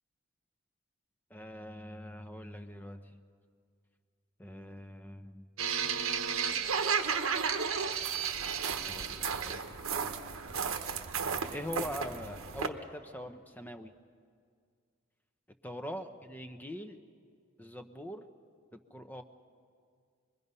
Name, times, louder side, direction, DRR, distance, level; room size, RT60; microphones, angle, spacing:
voice 1, 1.3-3.2 4.4-5.4 8.9-10.0 11.2-13.9 15.6-17.0 17.6-18.2 18.7-19.2, left 1 dB, 10° left, 8 dB, 0.7 m, -43 dB
sound 1, 5.6-12.7, right 6 dB, 80° right, 1.1 m, -33 dB
26.0 x 21.5 x 5.5 m, 2.1 s
head